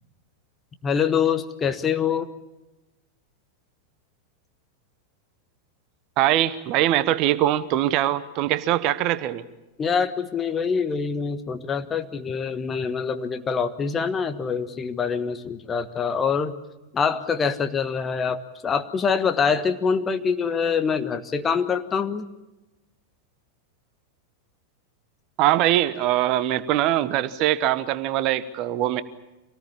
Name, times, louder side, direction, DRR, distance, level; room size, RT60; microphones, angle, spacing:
voice 1, 0.8-2.3 9.8-16.5 16.9-22.3, left 6 dB, 20° left, 9 dB, 1.4 m, -25 dB
voice 2, 6.2-9.4 25.4-29.0, right 13 dB, 40° right, 15 dB, 1.1 m, -22 dB
25.5 x 18.5 x 8.6 m, 1.0 s
figure-of-eight pair, 90°, 0 cm